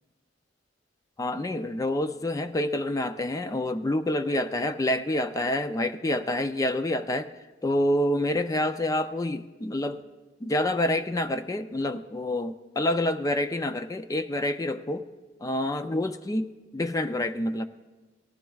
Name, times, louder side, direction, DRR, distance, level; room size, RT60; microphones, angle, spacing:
voice 1, 1.2-7.3 7.6-10.0 10.4-15.0 15.4-17.7, left 1 dB, 20° left, 9 dB, 0.4 m, -27 dB
18.5 x 15.5 x 2.3 m, 1.3 s
head